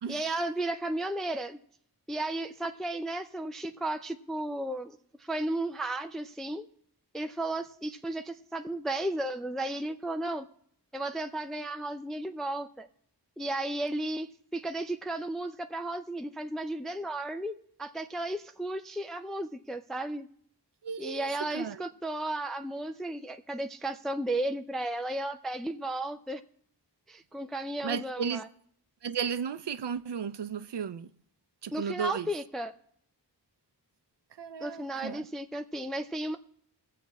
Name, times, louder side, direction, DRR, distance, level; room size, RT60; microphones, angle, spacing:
voice 1, 0.1-1.6 2.1-6.7 7.1-10.5 10.9-12.9 13.4-20.3 21.0-26.4 27.1-28.5 31.7-32.7 34.6-36.4, right 1 dB, ahead, 0.5 m, -34 dB
voice 2, 20.8-21.8 27.8-28.4 29.0-31.1 31.6-32.3 34.4-35.3, right 7 dB, 75° right, 0.6 m, -34 dB
20.0 x 7.6 x 4.1 m
wide cardioid pair, 75°, 41 cm